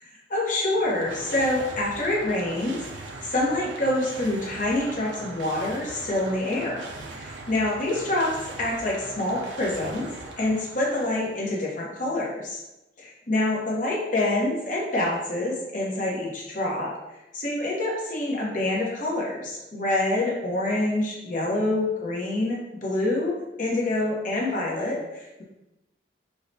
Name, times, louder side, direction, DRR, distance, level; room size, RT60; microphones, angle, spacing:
voice 1, 0.0-6.9 7.1-10.1 10.4-12.6 13.0-16.9 17.3-25.4, left 1 dB, 45° left, -3 dB, 0.9 m, -26 dB
sound 1, 0.6-11.4, right 2 dB, 70° right, 0.4 m, -40 dB
4.6 x 2.1 x 2.6 m, 0.95 s
head